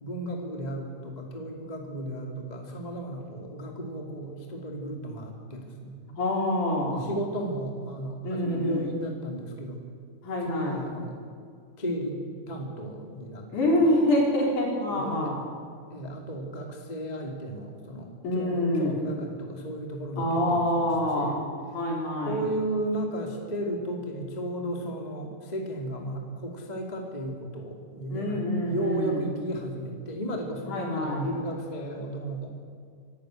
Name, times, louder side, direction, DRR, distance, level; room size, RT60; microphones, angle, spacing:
voice 1, 0.0-6.0 6.9-9.8 10.4-11.2 11.8-13.5 14.9-15.3 15.9-21.4 22.3-28.4 28.6-32.5, right 1 dB, 15° left, 1 dB, 1.7 m, -34 dB
voice 2, 6.2-7.1 8.2-8.9 10.2-10.8 13.5-15.4 18.2-19.0 20.2-21.4 21.7-22.4 28.1-29.3 30.7-31.3, left 1 dB, 50° left, -2 dB, 5.5 m, -26 dB
24.5 x 13.0 x 9.1 m, 2.1 s
omnidirectional pair, 4.6 m